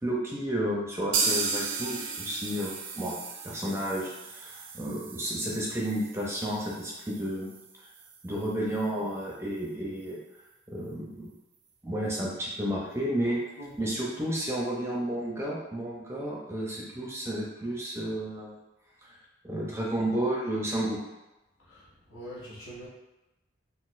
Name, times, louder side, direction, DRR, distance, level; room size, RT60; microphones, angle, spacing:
voice 1, 0.0-7.5 7.8-7.9 8.2-10.2 10.7-11.3 11.8-13.4 13.8-18.6 19.0-19.1 19.4-21.0, right 1 dB, 15° right, -4 dB, 0.5 m, -32 dB
sound 1, 1.1-8.9 9.2-9.3 9.6-9.7 10.1-10.2, right 4 dB, 75° right, 0.5 m, -35 dB
voice 2, 13.6-14.0 21.6-22.9, equal, 80° left, -8 dB, 1.3 m, -44 dB
4.0 x 2.4 x 2.5 m, 0.98 s
head